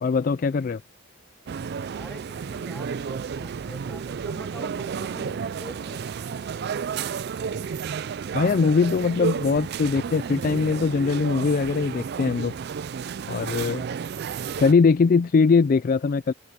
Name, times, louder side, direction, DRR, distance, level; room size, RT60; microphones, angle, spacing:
voice 1, 0.0-0.8 8.3-12.5 13.3-13.9 14.6-16.3, left 5 dB, 45° left, 0.3 m, -21 dB
sound 1, 1.5-14.7, right 6 dB, 50° right, 0.3 m, -32 dB
voice 2, 1.9-6.1, equal, 5° left, 3.0 m, -45 dB
Wind instrument woodwind instrument, 5.0-11.2, left 3 dB, 75° left, 4.5 m, -58 dB
head